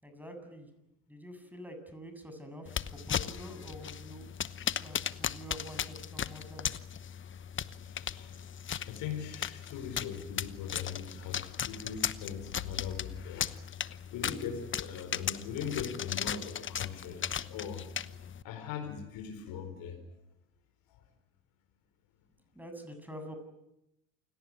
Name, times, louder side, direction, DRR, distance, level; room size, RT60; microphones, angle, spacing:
voice 1, 0.0-0.7 1.1-4.3 4.6-6.7 22.5-23.4, equal, 5° right, 7 dB, 7.6 m, -47 dB
sound 1, 2.7-18.4, left 8 dB, 30° left, 1.0 m, -37 dB
voice 2, 7.8-13.5 14.1-17.9 18.4-20.0 20.9-21.0, left 8 dB, 60° left, 5 dB, 4.4 m, -40 dB
28.5 x 18.5 x 9.7 m, 0.86 s
hypercardioid pair, 75°, 38 cm